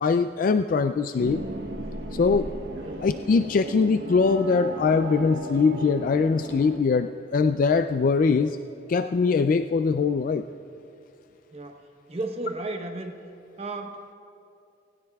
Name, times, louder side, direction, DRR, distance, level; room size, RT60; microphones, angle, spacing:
voice 1, 0.0-1.4 2.1-2.5 3.0-8.5 8.9-10.4, left 4 dB, 50° left, 9 dB, 0.3 m, -22 dB
sound 1, 1.2-6.8, right 1 dB, 75° right, 1.2 m, -36 dB
voice 2, 11.5-11.8 12.1-13.2 13.6-14.0, right 2 dB, 35° right, 4 dB, 0.9 m, -33 dB
19.5 x 17.0 x 2.3 m, 2.5 s
head